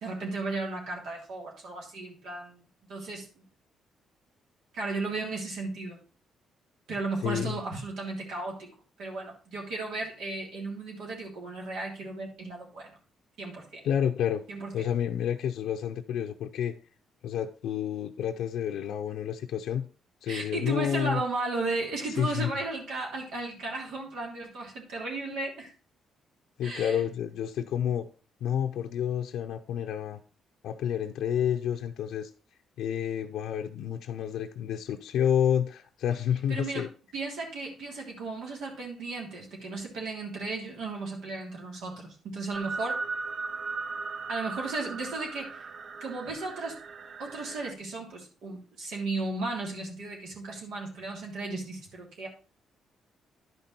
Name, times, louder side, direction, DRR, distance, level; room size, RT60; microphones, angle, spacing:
voice 1, 0.0-2.6 2.9-3.4 4.7-6.0 6.9-8.7 9.0-13.0 13.4-13.9 14.5-14.7 20.3-25.7 26.6-27.0 36.5-36.9 37.1-43.0 44.3-45.6 46.0-46.8 47.2-52.3, right 3 dB, 80° right, 0 dB, 3.0 m, -35 dB
voice 2, 7.2-7.6 13.8-14.4 14.7-16.7 17.2-19.9 20.2-21.2 22.2-22.5 26.6-28.1 28.4-30.2 30.6-32.3 32.8-36.9, left 9 dB, 80° left, 3 dB, 0.6 m, -29 dB
sound 1, 42.5-47.7, right 4 dB, 50° right, 0.6 m, -37 dB
11.0 x 5.4 x 4.4 m, 0.35 s
cardioid pair, 90°, 0 cm